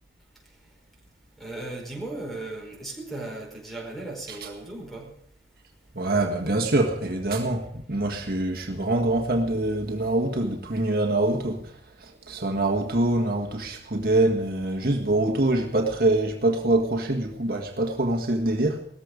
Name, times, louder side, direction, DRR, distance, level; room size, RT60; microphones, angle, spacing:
voice 1, 1.4-5.1, right 2 dB, ahead, 4.9 m, -36 dB
voice 2, 5.9-11.7 12.0-18.8, right 2 dB, 55° right, 1.7 m, -24 dB
18.5 x 14.5 x 5.2 m
head